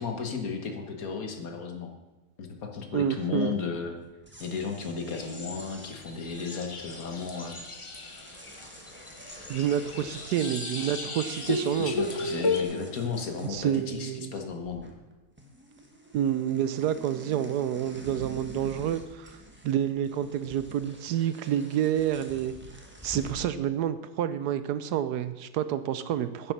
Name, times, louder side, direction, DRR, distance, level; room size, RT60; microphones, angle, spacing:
voice 1, 0.0-1.9 2.4-4.0 4.4-7.6 11.8-14.8, left 5 dB, 60° left, 4 dB, 1.7 m, -34 dB
voice 2, 2.9-3.5 9.5-11.9 13.5-14.3 16.1-19.4 19.6-22.5 23.0-26.5, right 10 dB, 80° right, 13 dB, 1.2 m, -28 dB
sound 1, 4.1-14.1 14.4-15.1 15.4-23.4, equal, 5° right, 1.3 m, -48 dB
sound 2, 5.1-12.6, left 3 dB, 30° left, 0.6 m, -35 dB
10.0 x 7.5 x 6.5 m, 1.1 s
omnidirectional pair, 1.8 m